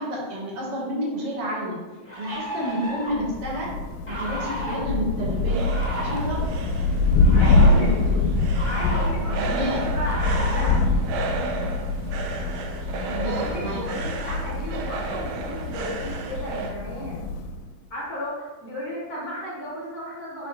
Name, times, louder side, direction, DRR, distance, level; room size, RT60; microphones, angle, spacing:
voice 1, 0.0-1.8 2.1-3.7 4.1-5.7 5.9-6.6 7.5-8.2 9.3-9.8 10.4-10.8 13.1-13.8, equal, 55° right, -4 dB, 1.9 m, -30 dB
sound 1, 1.2-1.3 2.0-3.3 4.1-4.8 5.6-6.2 7.1-7.7 8.5-9.1 10.0-10.6, equal, 10° left, 0.5 m, -33 dB
Thunder, 3.1-17.7, left 3 dB, 90° left, 2.2 m, -24 dB
sound 2, 4.9-16.8, right 3 dB, 85° right, 2.3 m, -33 dB
voice 2, 7.3-7.9 8.6-10.7 11.2-11.4 13.2-17.2 17.9-20.5, equal, 65° left, -7 dB, 0.9 m, -34 dB
5.8 x 5.6 x 3.1 m, 1.2 s
omnidirectional pair, 3.8 m